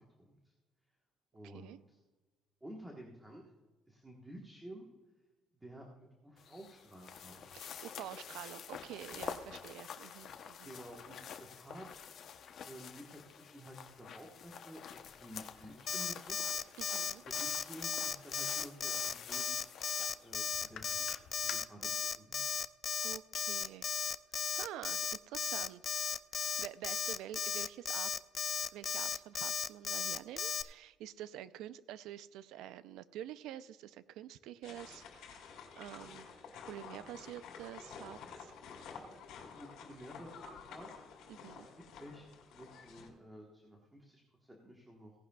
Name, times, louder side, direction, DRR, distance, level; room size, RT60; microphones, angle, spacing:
voice 1, 0.2-0.5 1.3-2.0 2.6-3.4 3.9-4.9 5.6-7.5 10.6-12.1 12.6-16.4 17.2-19.6 20.2-21.1 21.4-22.6 39.4-40.9 41.6-44.2 44.6-45.1, equal, 10° right, -1 dB, 1.2 m, -52 dB
sound 1, 6.4-21.5, left 8 dB, 50° left, 0.8 m, -49 dB
voice 2, 7.5-10.7 16.8-17.2 23.0-23.9 24.5-28.1 28.7-36.2 36.7-38.5 41.3-41.7, right 12 dB, 80° right, 15 dB, 0.5 m, -48 dB
Alarm, 15.9-30.6, left 6 dB, 30° left, 0.3 m, -36 dB
sound 2, 34.6-43.1, left 5 dB, 70° left, 2.6 m, -51 dB
17.0 x 11.0 x 2.3 m, 1.3 s
cardioid pair, 160°, 0 cm